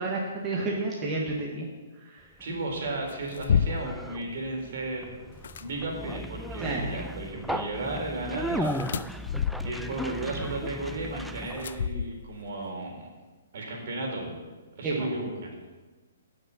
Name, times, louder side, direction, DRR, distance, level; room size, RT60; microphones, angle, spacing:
voice 1, 0.0-1.7 2.1-2.2 6.6-6.9 14.8-15.1, right 2 dB, 20° right, -3 dB, 1.7 m, -30 dB
Conversation, 2.4-11.9, equal, ahead, 0.4 m, -36 dB
voice 2, 2.4-5.2 5.6-8.7 9.6-13.1 13.5-14.4 14.8-15.6, right 2 dB, 60° right, 0 dB, 3.9 m, -34 dB
sound 1, 3.1-4.0 5.3-5.6 8.6-9.9 11.6-12.5, left 7 dB, 65° left, 0.6 m, -29 dB
11.0 x 6.6 x 8.4 m, 1.3 s
hypercardioid pair, 150°, 0 cm